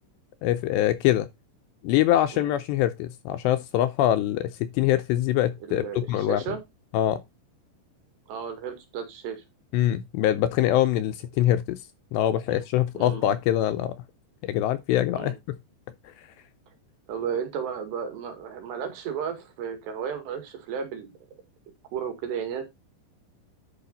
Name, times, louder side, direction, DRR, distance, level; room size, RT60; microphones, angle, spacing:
voice 1, 0.4-1.3 1.8-6.4 6.9-7.2 9.7-11.8 12.1-13.9 14.4-15.3, left 12 dB, 80° left, 2.6 m, -24 dB
voice 2, 5.6-6.6 8.3-9.4 12.5-12.6 12.9-13.2 15.2-15.3 17.1-21.2 21.9-22.6, right 7 dB, 65° right, 4.0 m, -33 dB
11.0 x 5.7 x 4.0 m
omnidirectional pair, 5.4 m